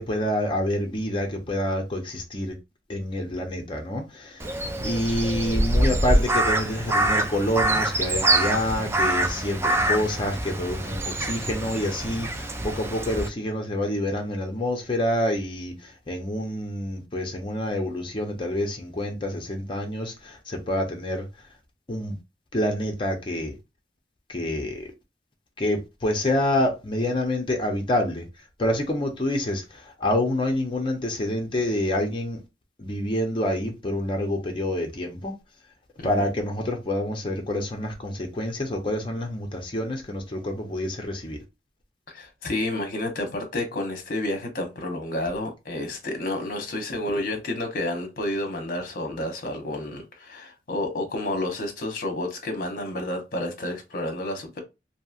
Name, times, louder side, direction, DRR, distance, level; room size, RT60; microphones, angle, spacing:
voice 1, 0.0-2.5 2.9-4.5 4.8-21.2 21.9-22.2 22.5-23.5 24.3-24.9 25.6-28.3 28.6-32.4 32.8-35.3 36.0-41.4, left 1 dB, 30° left, 0.6 m, -27 dB
Crow, 4.4-13.3, right 1 dB, 15° right, 0.4 m, -25 dB
voice 2, 42.1-54.6, left 1 dB, 55° left, 0.9 m, -30 dB
3.0 x 2.7 x 2.4 m
head